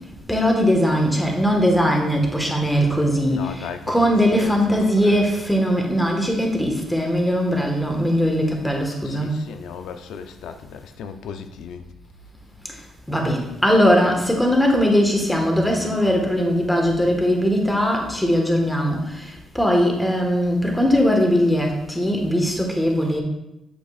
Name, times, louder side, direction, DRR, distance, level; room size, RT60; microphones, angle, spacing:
voice 1, 0.3-9.4 13.1-19.3 19.5-23.2, equal, 5° left, 1 dB, 1.5 m, -20 dB
voice 2, 3.3-3.8 4.3-5.4 9.0-11.8, left 7 dB, 80° left, 9 dB, 0.5 m, -36 dB
8.3 x 6.4 x 2.5 m, 0.89 s
cardioid pair, 90°, 0 cm